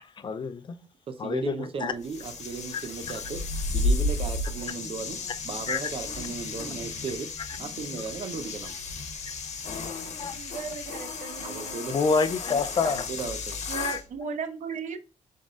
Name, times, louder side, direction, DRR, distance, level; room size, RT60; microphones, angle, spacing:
voice 1, 0.2-0.8 1.2-1.9 5.7-5.8 10.2-10.4 11.9-13.0 13.7-14.0, left 5 dB, 40° left, 0.5 m, -27 dB
voice 2, 1.1-3.4 3.7-7.3 7.6-8.8 11.4-12.0 12.9-13.6, right 5 dB, 50° right, 0.6 m, -36 dB
sound 1, 2.0-14.0, left 3 dB, 70° left, 1.1 m, -33 dB
voice 3, 10.3-11.8 12.5-12.9 13.7-15.0, right 6 dB, 85° right, 0.8 m, -37 dB
3.8 x 3.7 x 3.6 m
wide cardioid pair, 160°, 12 cm